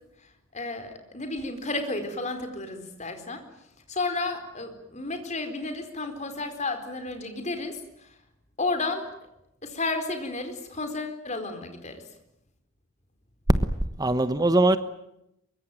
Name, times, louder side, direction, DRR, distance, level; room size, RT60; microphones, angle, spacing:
voice 1, 0.5-3.4 3.9-8.1 8.6-9.1 9.6-12.0, left 3 dB, 35° left, 7 dB, 4.4 m, -32 dB
voice 2, 13.5-14.8, right 2 dB, 20° right, 12 dB, 1.1 m, -22 dB
24.0 x 23.5 x 9.2 m, 0.83 s
head